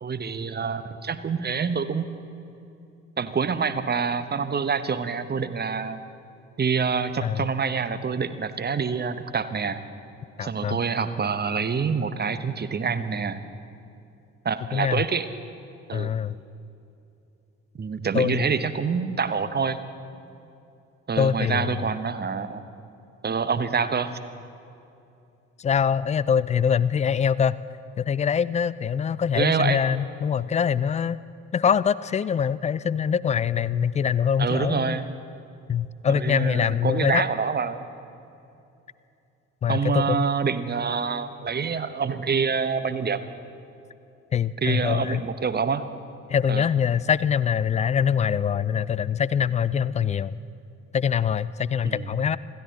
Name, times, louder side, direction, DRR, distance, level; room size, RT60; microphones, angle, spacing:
voice 1, 0.0-2.1 3.2-6.0 6.6-9.8 10.4-13.4 14.4-15.3 15.9-16.1 17.8-19.8 21.1-22.6 23.2-24.2 29.3-29.8 34.4-35.1 36.2-37.9 39.7-43.2 44.6-45.8 46.5-46.7 51.8-52.1, right 5 dB, 25° right, 11 dB, 1.0 m, -26 dB
voice 2, 10.4-10.8 14.7-15.0 15.9-16.3 18.1-18.5 21.2-21.8 25.6-27.6 28.0-31.2 31.5-35.0 35.7-37.2 39.6-40.3 44.3-45.2 46.3-50.4 50.9-52.4, left 7 dB, 20° left, 19 dB, 0.3 m, -24 dB
27.0 x 13.0 x 4.1 m, 2.7 s
figure-of-eight pair, 45°, 38 cm